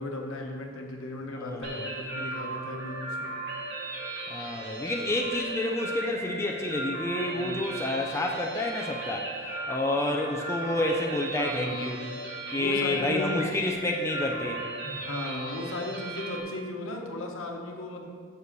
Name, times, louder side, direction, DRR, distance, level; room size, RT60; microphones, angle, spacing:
voice 1, 0.0-3.3 7.4-7.6 11.4-12.1 12.6-13.4 14.8-18.1, left 2 dB, 70° left, 1 dB, 1.0 m, -36 dB
voice 2, 1.4-1.9 4.3-9.3 9.7-12.0 12.5-14.7, left 2 dB, 10° left, 0 dB, 0.4 m, -29 dB
sound 1, 1.6-16.4, right 2 dB, 60° right, 1.4 m, -36 dB
6.2 x 5.0 x 6.6 m, 2.1 s
head